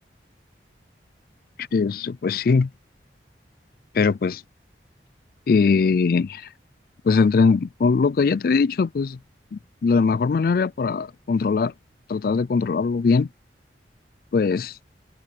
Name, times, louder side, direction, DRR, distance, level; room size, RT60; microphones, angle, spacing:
voice 1, 1.7-2.7 3.9-4.4 5.5-6.5 7.0-9.2 9.5-11.7 12.1-13.3 14.3-14.7, left 4 dB, 55° left, 0.3 m, -21 dB
head